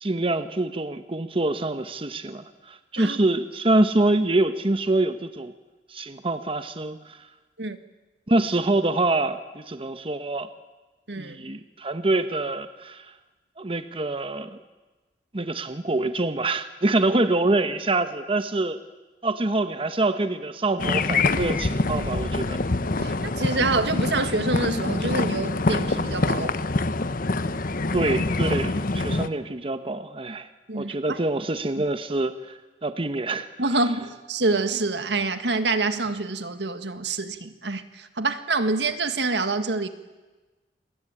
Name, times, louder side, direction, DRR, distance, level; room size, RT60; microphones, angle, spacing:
voice 1, 0.0-5.5 5.9-7.2 8.3-10.5 11.2-13.1 13.6-14.6 15.3-18.8 19.2-22.6 27.9-30.5 30.7-33.5, right 2 dB, 30° right, 1.1 m, -25 dB
sound 1, 20.8-29.3, left 3 dB, 50° left, 1.0 m, -25 dB
voice 2, 23.0-26.6 30.7-31.2 33.6-39.9, right 3 dB, 75° right, 1.8 m, -26 dB
28.0 x 22.0 x 9.0 m
head